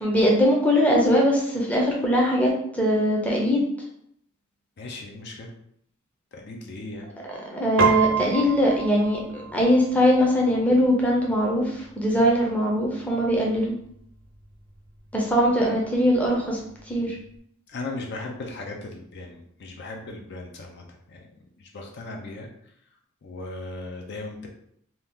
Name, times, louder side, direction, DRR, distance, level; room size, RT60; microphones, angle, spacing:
voice 1, 0.0-3.6 7.5-13.7 15.1-16.6 16.9-17.2, equal, 5° left, -3 dB, 0.6 m, -21 dB
voice 2, 4.8-5.5 6.3-7.1 17.7-21.2 21.6-22.5 23.2-24.5, left 2 dB, 55° left, 1 dB, 0.5 m, -37 dB
Piano, 7.8-17.4, right 5 dB, 65° right, 0.7 m, -33 dB
2.8 x 2.3 x 3.5 m, 0.70 s
head